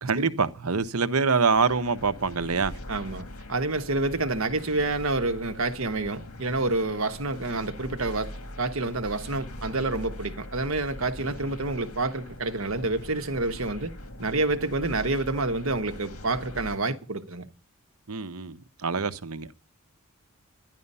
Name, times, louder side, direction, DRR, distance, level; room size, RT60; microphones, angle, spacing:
voice 1, 0.0-2.7 18.1-19.5, right 4 dB, 80° right, 1.0 m, -25 dB
sound 1, 1.5-16.8, left 1 dB, 75° left, 2.0 m, -42 dB
voice 2, 2.9-13.9 14.2-17.4, right 2 dB, 65° right, 1.3 m, -28 dB
12.5 x 11.0 x 5.5 m
head